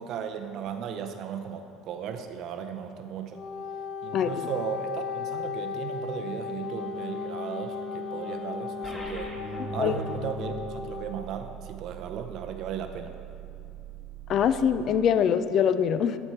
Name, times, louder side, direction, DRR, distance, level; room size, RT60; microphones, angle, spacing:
voice 1, 0.0-3.4 4.0-9.4 9.7-13.1, right 8 dB, 50° right, 7 dB, 0.6 m, -36 dB
Wind instrument woodwind instrument, 3.2-11.3, left 5 dB, 70° left, 1.0 m, -36 dB
Wind instrument woodwind instrument 2, 6.6-11.0, left 4 dB, 20° right, 1.0 m, -43 dB
sound 1, 8.8-14.9, right 4 dB, 5° left, 1.2 m, -41 dB
voice 2, 14.3-16.2, left 8 dB, 45° left, 12 dB, 0.3 m, -23 dB
12.5 x 4.4 x 4.5 m, 2.5 s
supercardioid pair, 120°, 0 cm